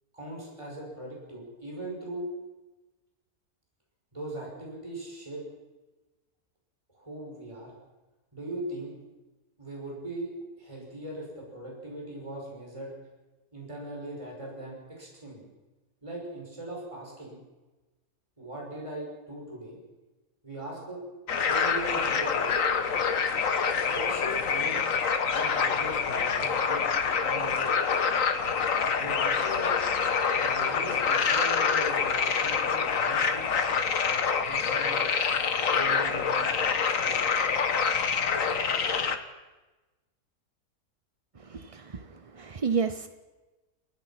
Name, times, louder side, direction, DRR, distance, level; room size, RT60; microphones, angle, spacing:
voice 1, 0.1-2.3 4.1-5.4 6.9-7.7 8.3-8.9 9.6-10.3 10.6-12.9 13.5-15.5 16.0-17.4 18.4-19.8 20.4-21.0 21.3-22.5 23.8-24.8 25.3-26.9 27.2-27.7 28.8-29.8 30.4-33.5 34.5-35.0 35.6-36.5 36.8-37.5, right 1 dB, 20° right, -2 dB, 6.0 m, -40 dB
sound 1, 21.3-39.2, left 6 dB, 55° left, 1.5 m, -26 dB
voice 2, 41.4-43.1, right 5 dB, 45° right, 10 dB, 0.4 m, -31 dB
29.0 x 15.5 x 5.9 m, 1.2 s
omnidirectional pair, 1.7 m